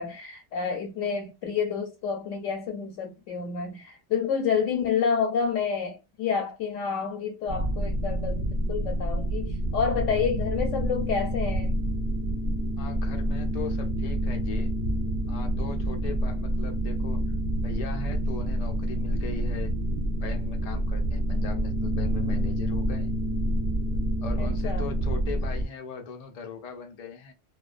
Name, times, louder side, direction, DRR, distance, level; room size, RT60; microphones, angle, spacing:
voice 1, 0.0-11.7 24.4-24.9, left 6 dB, 90° left, 0.9 m, -29 dB
sound 1, 7.5-25.7, right 1 dB, 55° right, 0.7 m, -28 dB
voice 2, 12.8-14.7 15.3-17.3 17.6-19.8 20.1-23.1 24.2-27.3, left 5 dB, 75° left, 0.3 m, -39 dB
2.3 x 2.2 x 2.4 m
omnidirectional pair, 1.2 m